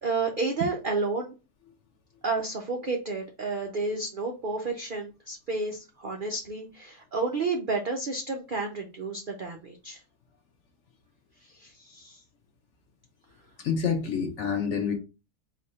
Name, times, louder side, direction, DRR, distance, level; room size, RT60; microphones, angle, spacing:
voice 1, 0.0-1.3 2.2-10.0 11.4-12.2, right 3 dB, 80° right, 0.4 m, -31 dB
voice 2, 13.6-14.9, left 6 dB, 55° left, 0.9 m, -27 dB
4.0 x 2.6 x 4.1 m
omnidirectional pair, 1.7 m